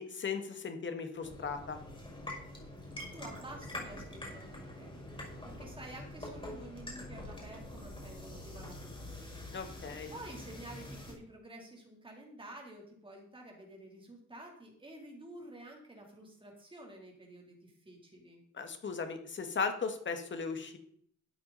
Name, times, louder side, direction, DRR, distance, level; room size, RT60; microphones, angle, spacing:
voice 1, 0.0-1.8 9.5-10.1 18.5-20.8, left 5 dB, 40° left, 6 dB, 1.8 m, -37 dB
sound 1, 1.2-11.1, left 1 dB, 15° left, 5.9 m, -45 dB
voice 2, 3.1-5.0 5.4-9.5 10.1-18.4, right 1 dB, 15° right, 0 dB, 3.5 m, -50 dB
13.0 x 8.5 x 4.2 m, 0.65 s
cardioid pair, 125°, 30 cm